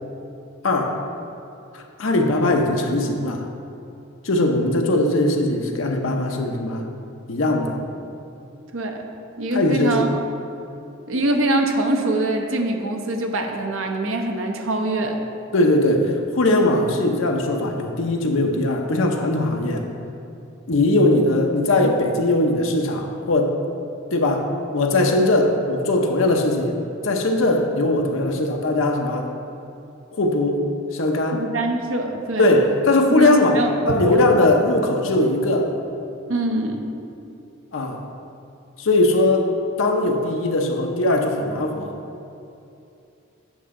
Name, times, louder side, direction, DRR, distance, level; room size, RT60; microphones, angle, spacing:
voice 1, 0.6-1.0 1.7-3.4 4.2-6.9 7.3-7.8 9.5-10.0 15.5-19.8 20.7-23.6 24.1-26.8 27.0-29.3 30.1-30.6 30.9-31.4 32.4-35.7 37.7-38.0 38.8-39.5 39.8-41.9, left 2 dB, 65° left, 2 dB, 0.8 m, -20 dB
voice 2, 8.7-9.0 9.4-10.1 11.1-15.2 21.7-21.9 31.3-32.6 33.1-33.7 34.2-34.3 36.3-36.8, right 1 dB, 70° right, 3 dB, 0.8 m, -24 dB
9.0 x 5.7 x 3.7 m, 2.7 s
head